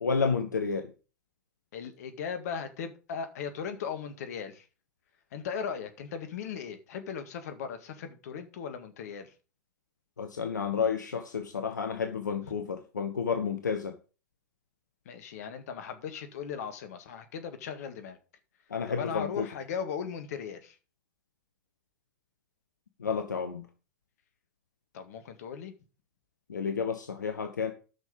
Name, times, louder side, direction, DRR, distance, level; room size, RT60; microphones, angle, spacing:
voice 1, 0.0-0.9 10.2-14.0 18.7-19.5 23.0-23.7 26.5-27.7, left 5 dB, 80° left, 7 dB, 1.1 m, -31 dB
voice 2, 1.7-4.6 5.3-9.3 12.4-12.6 15.1-18.2 18.9-20.8 24.9-25.7, left 7 dB, 60° left, 9 dB, 1.9 m, -38 dB
11.0 x 6.4 x 5.3 m, 0.34 s
figure-of-eight pair, 100°, 10 cm